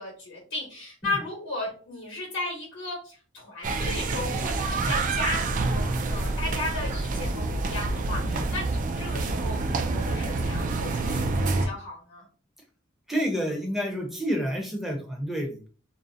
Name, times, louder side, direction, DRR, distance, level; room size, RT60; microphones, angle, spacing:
voice 1, 0.0-12.2, left 2 dB, 65° left, -3 dB, 0.9 m, -35 dB
sound 1, 3.6-11.7, right 3 dB, 40° right, 0.3 m, -27 dB
voice 2, 13.1-15.7, equal, ahead, 1 dB, 0.6 m, -29 dB
2.5 x 2.0 x 2.5 m, 0.38 s
head